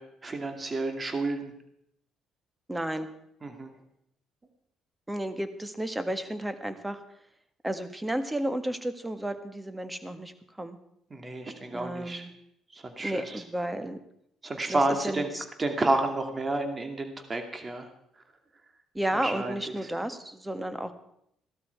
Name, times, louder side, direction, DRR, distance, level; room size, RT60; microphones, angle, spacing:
voice 1, 0.0-1.5 3.4-3.7 11.1-12.2 12.7-13.4 14.4-15.3 15.6-17.9 19.2-19.5, right 2 dB, 30° right, 6 dB, 2.3 m, -30 dB
voice 2, 2.7-3.1 5.1-7.0 7.6-10.8 11.7-12.3 13.0-14.0 14.7-15.4 18.9-20.9, right 1 dB, 10° right, 10 dB, 1.6 m, -32 dB
15.0 x 12.5 x 4.6 m, 0.75 s
hypercardioid pair, 55°, 0 cm